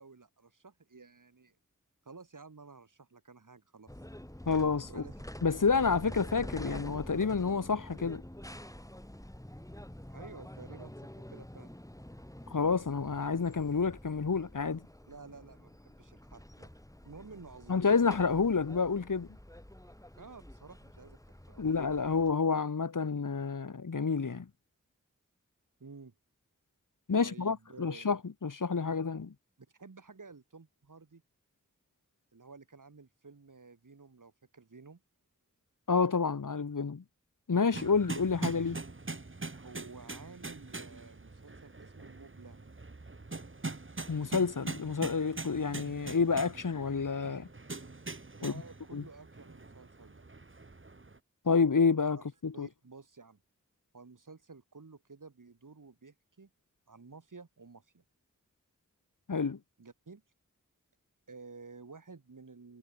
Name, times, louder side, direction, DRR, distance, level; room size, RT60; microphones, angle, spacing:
voice 1, 0.0-1.6 2.0-3.9 4.9-5.3 10.1-11.7 15.1-16.7 17.0-18.0 20.2-21.9 25.8-26.1 27.2-28.1 29.6-31.2 32.3-35.0 39.5-42.7 48.3-50.2 52.2-52.3 52.5-53.4 53.9-56.5 56.9-58.0 59.8-60.2 61.3-62.8, right 4 dB, 90° right, 7.4 m, -52 dB
sound 1, 3.9-22.3, left 1 dB, 10° left, 5.4 m, -48 dB
voice 2, 4.5-5.0 5.4-8.2 12.5-14.8 17.7-19.3 21.6-24.5 27.1-29.3 35.9-37.0 37.5-38.8 44.1-47.5 48.4-48.5 48.9-49.0 51.5-52.7 59.3-59.6, left 5 dB, 90° left, 2.2 m, -29 dB
sound 2, 37.7-51.2, right 3 dB, 40° right, 2.2 m, -43 dB
wide cardioid pair, 45°, 31 cm